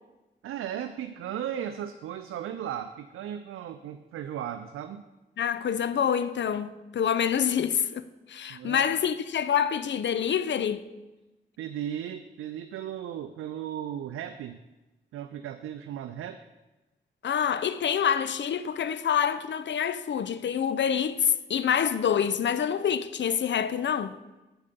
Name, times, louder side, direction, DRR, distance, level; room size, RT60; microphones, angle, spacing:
voice 1, 0.4-5.0 8.5-9.1 11.6-14.6 15.1-16.4, right 10 dB, 85° right, 0.4 m, -36 dB
voice 2, 5.4-10.8 17.2-24.2, left 8 dB, 60° left, 0.5 m, -27 dB
7.9 x 5.1 x 6.7 m
supercardioid pair, 45°, 21 cm